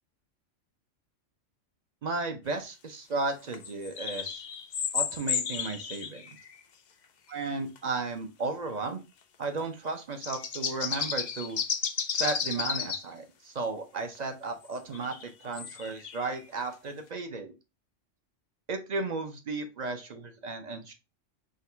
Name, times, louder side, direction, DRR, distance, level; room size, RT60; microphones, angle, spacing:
voice 1, 2.0-4.4 4.9-6.2 7.3-9.0 9.4-11.6 12.1-17.5 18.7-20.9, right 3 dB, 50° right, 6 dB, 0.5 m, -34 dB
sound 1, 3.5-6.6 7.8-7.9 9.9-13.0 14.7-16.7, left 7 dB, 65° left, 0.4 m, -33 dB
3.7 x 2.2 x 4.3 m, 0.27 s
omnidirectional pair, 1.3 m